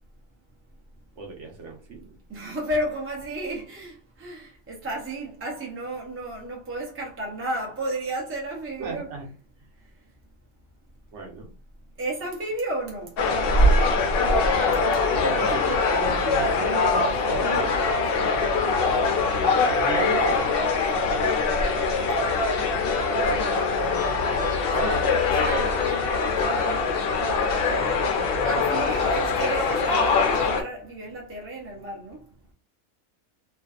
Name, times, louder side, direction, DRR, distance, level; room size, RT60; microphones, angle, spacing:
voice 1, 1.2-2.1 8.8-9.3 11.1-11.5 15.2-17.8 19.8-20.9 21.2-21.5 22.0-22.3 24.7-25.1 25.3-25.9, right 4 dB, 65° right, 0.9 m, -34 dB
voice 2, 2.3-9.1 12.0-13.2 18.2-18.5 21.0-21.6 22.0-22.3 23.2-27.1 28.4-32.2, right 1 dB, 20° right, 0.4 m, -34 dB
sound 1, 13.2-30.6, left 3 dB, 70° left, 0.5 m, -23 dB
2.5 x 2.2 x 2.3 m
omnidirectional pair, 1.5 m